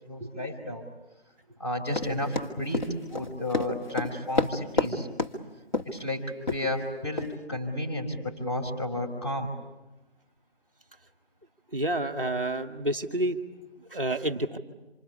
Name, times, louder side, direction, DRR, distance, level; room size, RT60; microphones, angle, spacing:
voice 1, 0.1-0.9 1.6-5.1 5.8-9.5, left 1 dB, 25° left, 2 dB, 4.7 m, -32 dB
Run, 1.9-4.9 5.2-5.3 5.7-6.0 6.5-6.6 7.2-7.3, left 3 dB, 45° left, 2.1 m, -28 dB
voice 2, 11.7-13.4 13.9-14.6, right 1 dB, 10° left, -4 dB, 1.1 m, -29 dB
27.0 x 26.0 x 8.3 m, 1.0 s
figure-of-eight pair, 160°, 32 cm